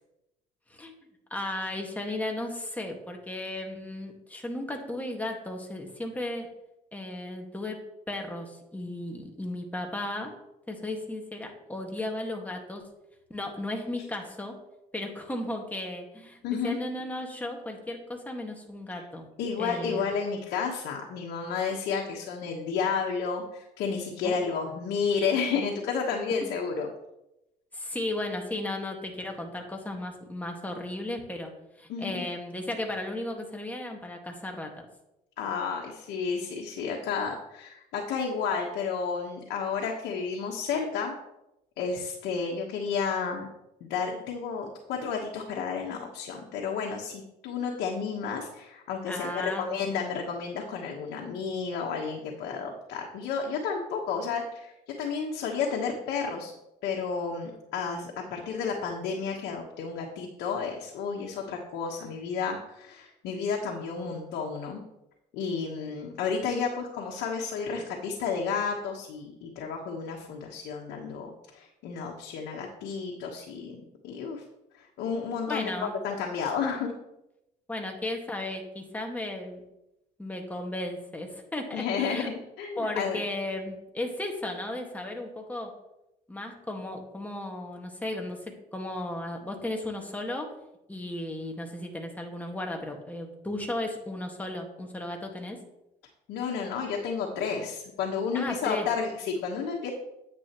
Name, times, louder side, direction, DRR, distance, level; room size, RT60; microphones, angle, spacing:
voice 1, 1.3-6.5 6.9-7.8 8.1-10.3 10.7-12.8 13.3-14.6 14.9-16.4 16.6-19.3 19.6-20.0 24.2-24.4 27.7-31.5 31.8-34.7 49.1-49.8 75.5-75.9 77.7-79.6 80.2-82.3 82.8-85.7 86.3-90.5 90.9-95.6 98.3-98.9, left 1 dB, 10° left, 2 dB, 1.7 m, -35 dB
voice 2, 16.4-16.8 18.9-19.0 19.4-26.9 31.9-32.3 35.4-41.1 41.8-43.5 43.8-56.5 56.8-64.8 65.3-74.4 74.7-75.7 76.0-76.9 81.7-83.2 96.3-99.9, left 5 dB, 85° left, 0 dB, 1.2 m, -31 dB
9.8 x 8.8 x 3.0 m, 0.88 s
cardioid pair, 110°, 17 cm